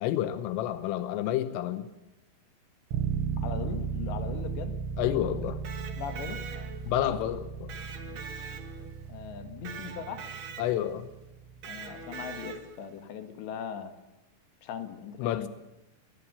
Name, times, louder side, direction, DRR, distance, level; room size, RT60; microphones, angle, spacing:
voice 1, 0.0-1.9 5.0-5.6 6.9-7.7 10.6-11.1 15.2-15.5, left 12 dB, 90° left, 11 dB, 3.6 m, -29 dB
sound 1, 2.9-12.6, right 6 dB, 75° right, 4.2 m, -36 dB
voice 2, 3.4-4.7 6.0-6.4 9.1-10.2 11.7-13.9 14.6-15.5, left 8 dB, 65° left, 8 dB, 3.7 m, -39 dB
Electric guitar, 5.5-7.0 7.7-9.1 9.6-10.9 11.6-12.9, right 5 dB, 55° right, 2.1 m, -43 dB
22.0 x 20.5 x 6.9 m, 0.97 s
omnidirectional pair, 5.7 m